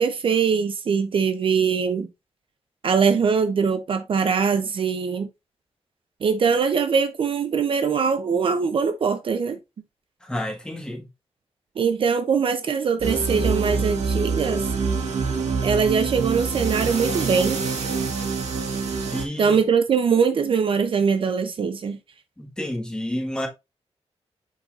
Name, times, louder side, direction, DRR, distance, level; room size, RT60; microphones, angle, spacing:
voice 1, 0.0-2.1 2.8-5.3 6.2-9.6 11.8-14.7 15.6-17.6 19.4-22.0, right 6 dB, 50° right, 0.6 m, -22 dB
voice 2, 10.2-11.0 19.1-19.6 22.4-23.5, left 1 dB, 5° left, 1.5 m, -30 dB
sound 1, 13.0-19.3, right 4 dB, 75° right, 1.9 m, -25 dB
7.3 x 5.5 x 2.5 m
wide cardioid pair, 175°, 11 cm